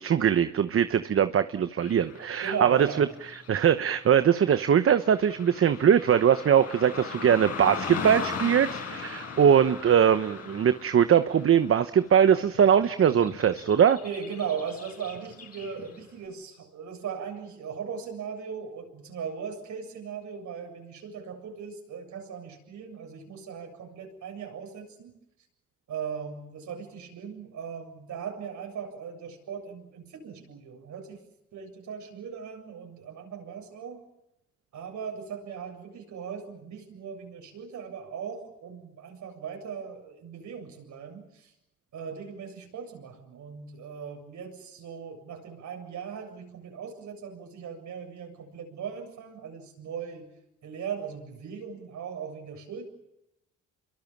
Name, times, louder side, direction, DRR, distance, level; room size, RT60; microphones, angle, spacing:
voice 1, 0.0-3.1 3.5-14.0, right 8 dB, 45° right, 11 dB, 1.0 m, -21 dB
Car passing by / Traffic noise roadway noise, 1.8-16.1, left 5 dB, 55° left, 7.1 m, -40 dB
voice 2, 2.4-3.1 14.0-25.1 25.9-31.3 31.5-34.0 34.7-41.5 41.9-50.3 50.6-52.9, right 7 dB, 70° right, 3 dB, 7.6 m, -38 dB
28.0 x 23.5 x 7.4 m, 0.87 s
cardioid pair, 90°, 30 cm